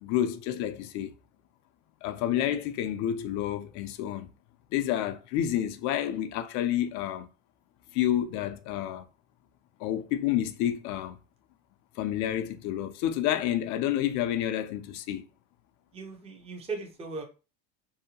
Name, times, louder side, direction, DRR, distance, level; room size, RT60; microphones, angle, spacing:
voice 1, 0.0-1.1 2.0-4.3 4.7-7.3 7.9-9.0 9.8-11.2 12.0-15.2, left 11 dB, 55° left, 0.4 m, -29 dB
voice 2, 15.9-17.2, right 4 dB, 15° right, 0.6 m, -38 dB
2.7 x 2.1 x 2.7 m
supercardioid pair, 105°, 35 cm